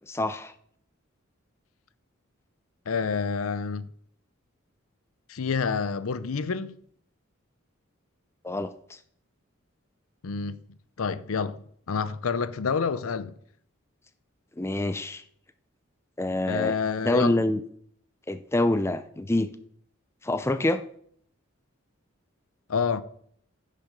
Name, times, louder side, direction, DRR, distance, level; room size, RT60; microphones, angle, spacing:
voice 1, 0.1-0.5 8.4-8.7 14.6-15.2 16.2-16.7 17.0-17.6 18.3-19.5 20.2-20.8, left 1 dB, 10° left, 0.4 m, -26 dB
voice 2, 2.9-3.9 5.3-6.7 10.2-10.6 11.0-13.3 16.4-17.3 22.7-23.0, left 5 dB, 85° left, 0.6 m, -28 dB
10.0 x 6.7 x 5.2 m
head